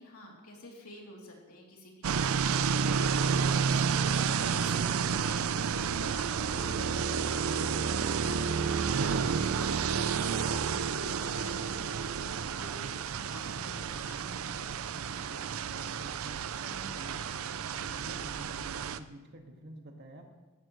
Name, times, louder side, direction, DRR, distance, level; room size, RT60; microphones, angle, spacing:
voice 1, 0.0-9.3 9.6-14.3, left 1 dB, 85° left, -2 dB, 3.0 m, -50 dB
sound 1, 2.0-19.0, right 6 dB, 70° right, 0.5 m, -30 dB
voice 2, 15.7-17.3 17.8-20.2, right 1 dB, 50° right, 2 dB, 1.7 m, -49 dB
15.5 x 13.0 x 3.1 m, 1.2 s
head